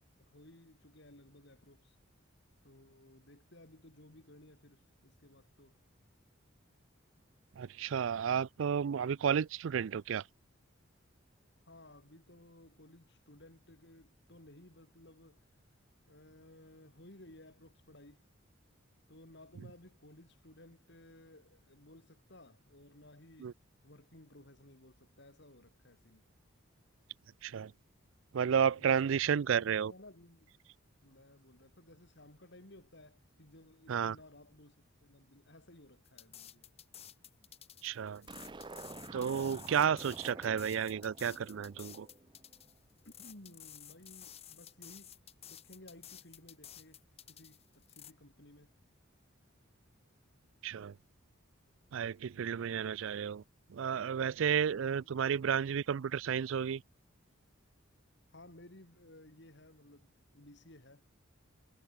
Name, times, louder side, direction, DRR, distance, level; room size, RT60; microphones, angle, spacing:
voice 1, 0.2-2.0 2.6-5.8 11.7-15.4 16.1-18.2 19.1-23.5 23.8-26.2 28.8-30.5 31.0-34.8 35.0-36.7 43.1-45.2 45.5-48.7 55.0-55.3 58.3-61.1, left 1 dB, 55° left, 3.7 m, -57 dB
voice 2, 7.6-10.2 23.4-23.5 27.4-27.7 28.3-29.9 33.9-34.2 37.8-38.3 39.1-42.1 50.6-50.9 51.9-53.4 53.7-56.8, right 7 dB, 70° right, 0.4 m, -32 dB
sound 1, 36.0-48.1, left 10 dB, 30° left, 1.2 m, -53 dB
sound 2, 38.3-42.7, right 3 dB, 25° right, 0.6 m, -49 dB
head